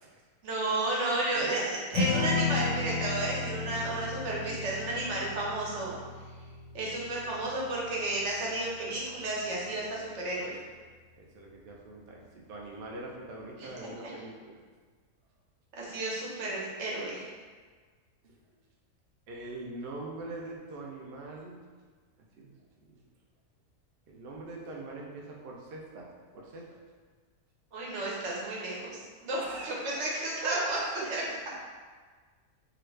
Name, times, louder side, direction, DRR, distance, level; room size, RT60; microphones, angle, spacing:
voice 1, 0.4-5.9 6.7-10.6 13.6-13.7 14.0-14.1 15.8-17.3 27.7-30.8 31.0-31.3, right 2 dB, 55° right, -4 dB, 1.0 m, -32 dB
voice 2, 1.3-1.6 2.4-2.6 3.8-4.0 4.5-4.6 7.2-7.4 11.2-14.6 18.2-18.3 19.3-21.6 22.4-22.5 22.9-23.0 24.1-26.1 26.3-26.7 29.4-30.0 30.4-30.8, right 2 dB, 85° right, -2 dB, 0.5 m, -42 dB
Strum, 1.9-8.2, left 4 dB, 85° left, 1.1 m, -34 dB
2.9 x 2.5 x 3.1 m, 1.5 s
omnidirectional pair, 1.6 m